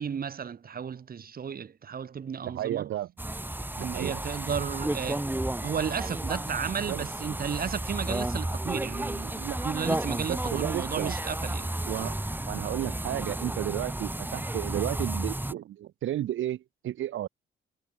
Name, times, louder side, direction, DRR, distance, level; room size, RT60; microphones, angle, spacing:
voice 1, 0.0-2.9 3.8-5.3 5.6-11.7, right 7 dB, 50° right, 5.6 m, -34 dB
voice 2, 2.4-3.1 3.8-4.2 6.8-7.0 9.4-9.6 10.3-11.1 11.9-12.2 12.5-17.3, right 12 dB, 80° right, 5.0 m, -33 dB
sound 1, 3.2-15.5, right 1 dB, 10° right, 4.6 m, -32 dB
cardioid pair, 90°, 20 cm